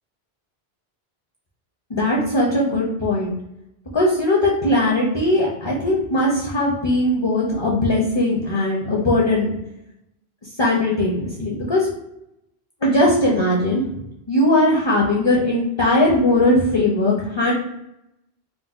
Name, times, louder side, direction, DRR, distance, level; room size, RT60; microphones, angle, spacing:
voice 1, 1.9-3.4 3.9-9.5 10.6-11.9 12.8-13.8 14.3-17.5, left 1 dB, 35° left, -4 dB, 0.5 m, -19 dB
3.8 x 2.1 x 2.4 m, 0.83 s
omnidirectional pair, 1.1 m